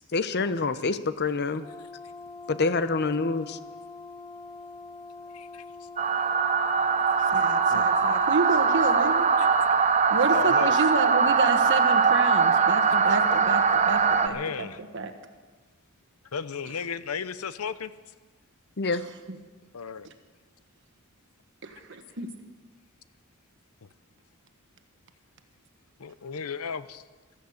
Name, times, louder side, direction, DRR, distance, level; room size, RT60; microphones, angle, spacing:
voice 1, 0.1-1.7 2.5-3.6 18.8-19.0, left 3 dB, 50° left, 0.7 m, -26 dB
Brass instrument, 1.6-9.3, left 4 dB, 15° left, 1.1 m, -44 dB
voice 2, 5.3-5.6 7.7-7.9 9.4-9.5 10.2-10.7 14.3-14.8 16.3-17.9 19.7-20.1 23.8-23.9 26.0-27.0, left 6 dB, 80° left, 0.7 m, -34 dB
sound 1, 6.0-14.3, right 5 dB, 30° right, 0.7 m, -22 dB
voice 3, 7.3-9.3 10.1-14.7 14.9-15.1 21.6-22.3, right 3 dB, 55° right, 1.4 m, -29 dB
15.5 x 14.0 x 6.5 m
head